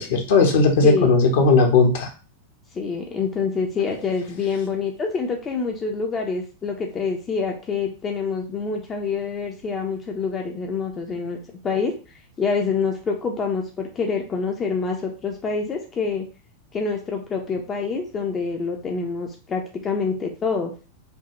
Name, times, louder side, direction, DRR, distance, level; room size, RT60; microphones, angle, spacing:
voice 1, 0.0-2.1, left 4 dB, 55° left, 3 dB, 0.9 m, -17 dB
voice 2, 2.7-11.4 11.6-11.9 12.4-16.3 16.7-20.7, left 5 dB, 25° left, 2 dB, 0.6 m, -26 dB
5.2 x 2.3 x 3.0 m, 0.35 s
figure-of-eight pair, 90°, 0 cm